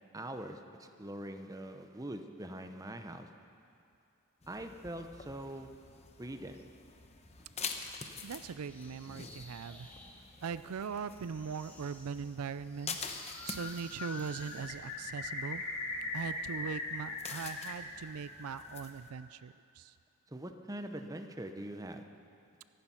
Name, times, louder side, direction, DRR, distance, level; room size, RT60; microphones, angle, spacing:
voice 1, 0.1-3.3 4.5-5.7 6.2-6.6 20.3-22.0, right 1 dB, 15° right, 6 dB, 0.7 m, -43 dB
sound 1, 4.4-19.1, left 5 dB, 30° left, 0.9 m, -47 dB
voice 2, 8.2-9.9 10.4-15.6 16.1-19.9, right 6 dB, 80° right, 14 dB, 0.4 m, -41 dB
sound 2, 8.6-14.9, left 1 dB, 5° left, 1.1 m, -55 dB
Bird, 13.2-13.7 14.0-17.7 18.0-18.8, left 3 dB, 80° left, 2.6 m, -40 dB
24.0 x 10.5 x 5.7 m, 2.5 s
head